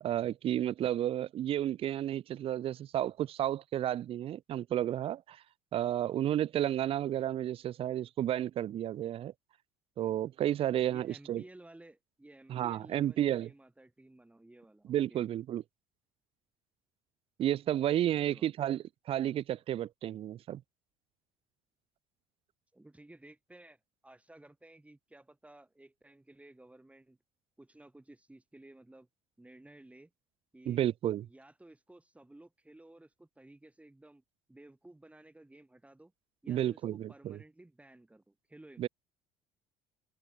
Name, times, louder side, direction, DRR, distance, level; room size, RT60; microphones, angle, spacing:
voice 1, 0.0-5.4 5.7-9.3 10.0-11.4 12.5-13.5 14.9-15.6 17.4-20.6 30.7-31.3 36.5-37.4 38.8-38.9, right 11 dB, 45° right, 0.4 m, -32 dB
voice 2, 10.9-15.3 18.2-18.5 22.7-27.2 27.6-29.1 29.4-30.1 30.5-30.8 31.2-34.2 34.5-36.1 36.4-38.9, right 1 dB, 10° right, 2.5 m, -56 dB
hypercardioid pair, 70°, 14 cm